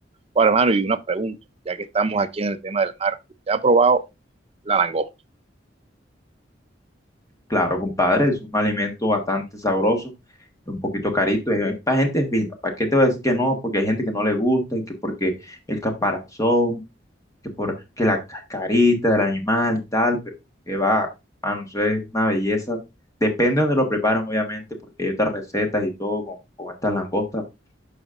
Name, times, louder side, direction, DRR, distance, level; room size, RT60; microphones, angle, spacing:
voice 1, 0.4-1.4 1.7-3.2 3.5-4.0 4.7-5.1, right 4 dB, 35° right, 0.5 m, -20 dB
voice 2, 7.5-10.1 10.7-16.8 17.4-20.2 20.7-21.1 21.4-22.8 23.2-24.6 25.0-27.4, left 1 dB, 20° left, 1.4 m, -22 dB
12.5 x 5.0 x 2.5 m
head